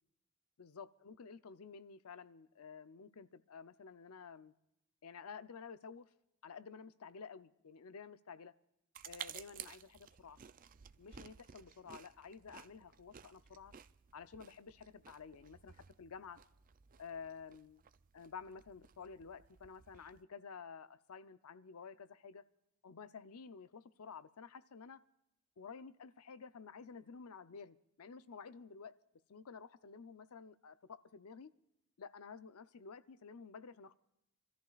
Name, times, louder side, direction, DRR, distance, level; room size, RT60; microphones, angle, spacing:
voice 1, 0.6-4.5 5.0-6.1 6.4-8.5 9.1-10.4 11.0-13.7 14.1-16.4 17.0-17.8 18.1-22.4 22.8-25.0 25.6-28.9 29.3-31.5 32.0-33.9, left 5 dB, 80° left, 0.6 m, -52 dB
sound 1, 8.9-20.2, right 9 dB, 40° right, 0.4 m, -55 dB
27.5 x 13.5 x 2.4 m
head